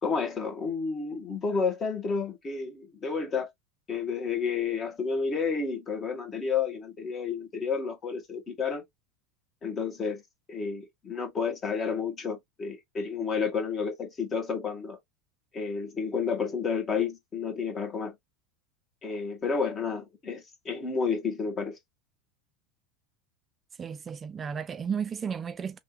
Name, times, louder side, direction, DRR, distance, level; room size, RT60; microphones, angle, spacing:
voice 1, 0.0-3.5 3.9-8.8 9.6-10.2 10.5-15.0 15.5-18.1 19.0-21.8, left 5 dB, 35° left, 1.5 m, -31 dB
voice 2, 23.8-25.8, right 7 dB, 30° right, 0.3 m, -33 dB
3.3 x 2.7 x 2.8 m
hypercardioid pair, 95°, 0 cm